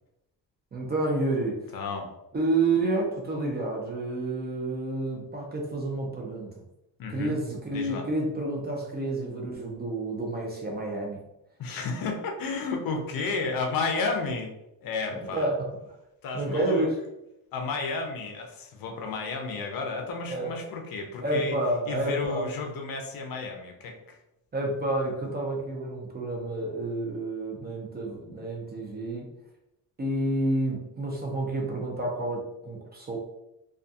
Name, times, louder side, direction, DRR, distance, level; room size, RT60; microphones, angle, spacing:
voice 1, 0.7-1.7 2.3-6.6 7.1-11.2 15.1-15.7 16.3-17.0 20.3-20.5 21.2-22.5 24.5-29.3 30.0-33.2, right 2 dB, 25° right, -1 dB, 0.5 m, -29 dB
voice 2, 1.7-2.1 7.0-7.4 7.7-8.1 11.6-14.5 14.8-15.5 16.2-16.9 17.5-21.6 21.9-24.2, left 4 dB, 55° left, 3 dB, 0.6 m, -32 dB
2.3 x 2.3 x 2.6 m, 0.88 s
cardioid pair, 110°, 42 cm